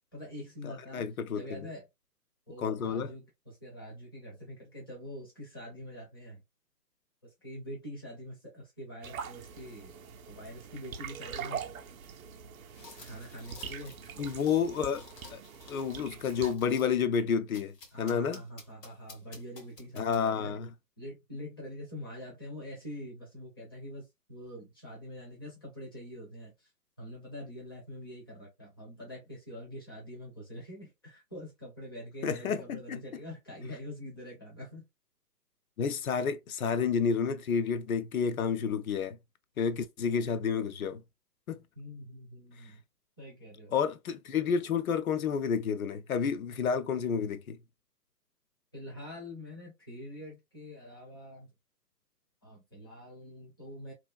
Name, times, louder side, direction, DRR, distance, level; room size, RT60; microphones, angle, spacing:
voice 1, 0.1-1.0 1.3-1.9 2.5-6.4 7.2-9.9 10.3-11.7 13.0-13.9 17.9-20.5 21.0-26.7 27.0-34.9 40.1-40.2 41.8-42.8 43.2-43.7 48.7-51.5 52.4-53.9, equal, 15° left, 0.5 m, -45 dB
voice 2, 0.6-1.6 2.6-3.1 14.2-15.0 15.3-15.4 15.7-18.4 20.0-20.7 32.2-33.0 35.8-39.2 39.6-41.0 41.5-41.6 43.7-47.6, left 6 dB, 60° left, 0.5 m, -30 dB
sound 1, 9.0-16.6, right 7 dB, 60° right, 0.5 m, -43 dB
sound 2, 12.7-17.0 17.5-20.5, left 4 dB, 80° left, 1.2 m, -53 dB
2.9 x 2.4 x 2.2 m
hypercardioid pair, 150°, 49 cm